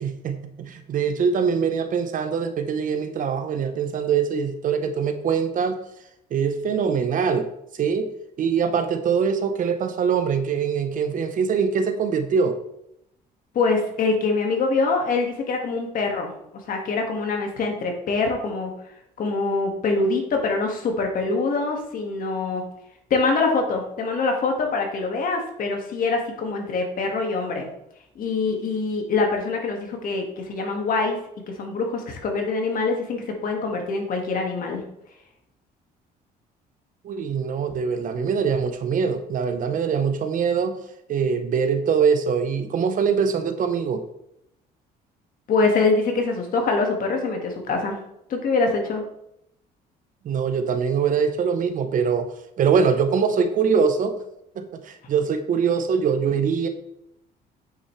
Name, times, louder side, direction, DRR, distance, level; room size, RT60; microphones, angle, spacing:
voice 1, 0.0-5.8 6.3-7.5 7.7-8.1 8.4-12.6 37.0-40.8 41.1-44.0 50.2-52.3 52.6-54.2 54.6-56.7, right 6 dB, 50° right, 8 dB, 0.9 m, -23 dB
voice 2, 13.5-16.3 16.7-18.7 19.2-22.6 23.1-27.7 28.2-31.2 31.5-34.8 45.5-48.0 48.3-49.0, left 3 dB, 55° left, 2 dB, 1.9 m, -24 dB
8.5 x 6.2 x 3.2 m, 0.79 s
cardioid pair, 110°, 17 cm